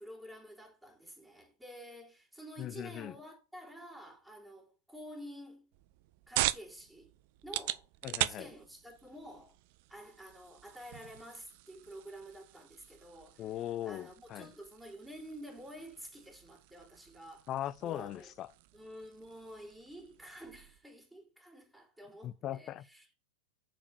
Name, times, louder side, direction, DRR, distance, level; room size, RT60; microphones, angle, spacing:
voice 1, 0.0-5.7 6.3-7.1 7.4-7.9 8.2-9.6 9.9-13.5 13.8-17.5 17.8-18.3 18.7-23.1, equal, ahead, 3.4 m, -50 dB
voice 2, 2.6-3.2 8.0-8.5 13.4-14.5 17.5-18.5 22.2-22.8, left 12 dB, 30° left, 0.6 m, -39 dB
sound 1, 5.7-20.8, right 16 dB, 50° right, 0.5 m, -42 dB
7.2 x 5.0 x 6.6 m
figure-of-eight pair, 90°, 0 cm